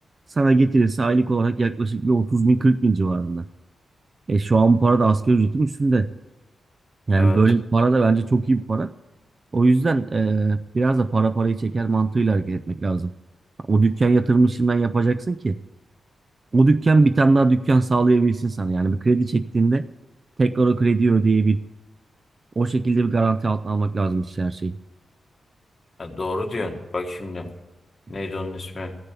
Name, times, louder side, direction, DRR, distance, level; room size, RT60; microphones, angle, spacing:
voice 1, 0.4-3.4 4.3-6.1 7.1-8.9 9.5-13.1 13.7-15.6 16.5-19.9 20.4-21.6 22.6-24.7, right 3 dB, 30° right, 12 dB, 0.4 m, -19 dB
voice 2, 26.0-27.5 28.1-29.0, left 2 dB, 30° left, 3 dB, 1.5 m, -30 dB
14.5 x 6.6 x 8.3 m, 1.1 s
wide cardioid pair, 145°, 0 cm